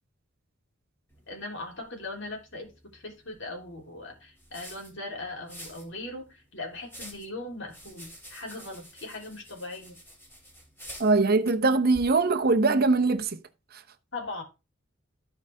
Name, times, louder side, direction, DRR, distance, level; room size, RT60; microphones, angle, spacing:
sound 1, 1.1-13.3, equal, 10° left, 3.2 m, -50 dB
voice 1, 1.3-10.0 14.1-14.4, left 2 dB, 65° left, 3.5 m, -39 dB
voice 2, 11.0-13.4, right 3 dB, 50° right, 0.9 m, -22 dB
14.5 x 4.9 x 3.5 m
head